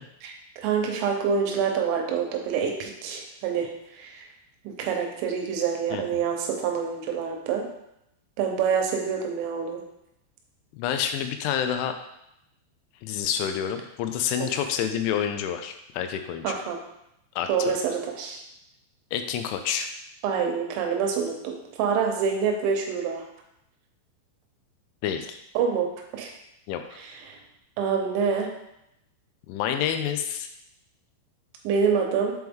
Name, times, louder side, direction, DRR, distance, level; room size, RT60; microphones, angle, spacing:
voice 1, 0.2-4.3 4.6-7.7 8.4-9.8 14.4-14.5 16.4-16.8 17.5-18.4 20.2-23.2 25.5-26.3 27.0-27.4 27.8-28.5 31.6-32.3, right 6 dB, 80° right, 2 dB, 3.3 m, -27 dB
voice 2, 10.7-12.0 13.0-16.5 17.4-17.8 19.1-19.9 25.0-25.4 26.7-26.8 29.5-30.5, left 9 dB, 85° left, 7 dB, 2.9 m, -28 dB
7.8 x 4.5 x 3.6 m, 0.81 s
omnidirectional pair, 5.5 m